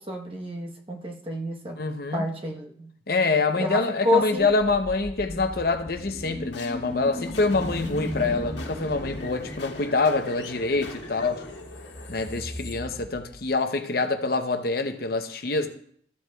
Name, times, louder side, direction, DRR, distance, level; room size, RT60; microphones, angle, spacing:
voice 1, 0.0-1.8 2.1-2.9 3.6-4.5, left 1 dB, 30° right, 1.0 m, -29 dB
voice 2, 1.8-2.3 3.1-11.4 12.1-15.7, left 3 dB, 55° left, 0.7 m, -25 dB
sound 1, 4.4-13.5, left 1 dB, 85° left, 1.4 m, -36 dB
14.0 x 7.8 x 2.3 m
head